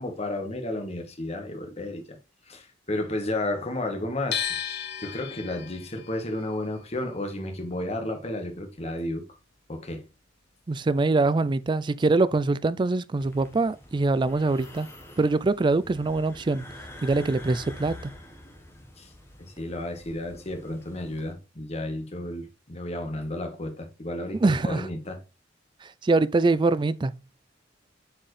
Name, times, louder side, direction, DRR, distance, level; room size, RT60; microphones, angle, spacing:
voice 1, 0.0-2.2 2.5-9.3 9.7-10.0 19.0-19.1 19.4-25.2, left 1 dB, 35° left, 1.5 m, -32 dB
sound 1, 4.3-10.3 10.6-11.9, left 9 dB, 60° left, 0.9 m, -37 dB
voice 2, 10.7-14.9 15.2-16.7 17.0-17.9 24.4-24.9 26.0-27.1, right 3 dB, 25° right, 0.3 m, -23 dB
sound 2, 13.2-21.3, left 1 dB, 15° left, 1.3 m, -46 dB
7.1 x 4.5 x 3.3 m
head